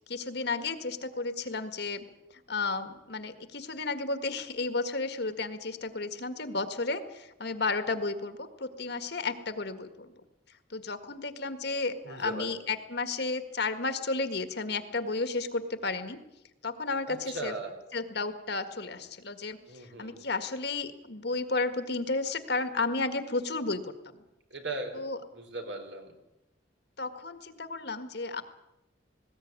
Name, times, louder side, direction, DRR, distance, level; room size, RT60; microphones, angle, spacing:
voice 1, 0.1-2.0 2.5-10.1 10.7-16.2 16.6-17.5 17.9-19.6 20.0-23.9 24.9-25.2 27.0-28.4, left 3 dB, 60° left, 10 dB, 1.8 m, -32 dB
voice 2, 12.0-12.6 17.1-17.7 19.7-20.2 24.5-25.0 25.3-26.1, right 2 dB, 65° right, 5 dB, 4.4 m, -38 dB
20.0 x 17.5 x 9.6 m, 0.91 s
head